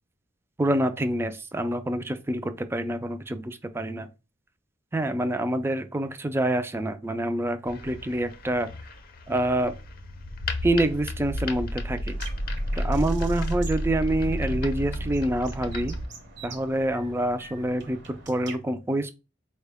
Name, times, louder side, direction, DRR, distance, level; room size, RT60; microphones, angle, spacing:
voice 1, 0.6-4.1 4.9-8.7 9.3-9.7 10.6-12.2 12.8-16.0 16.4-19.1, right 1 dB, 15° right, 0.3 m, -27 dB
sound 1, 7.7-16.0, equal, 50° left, 0.6 m, -32 dB
sound 2, 12.1-18.6, right 3 dB, 60° right, 0.8 m, -45 dB
4.2 x 2.1 x 3.4 m
head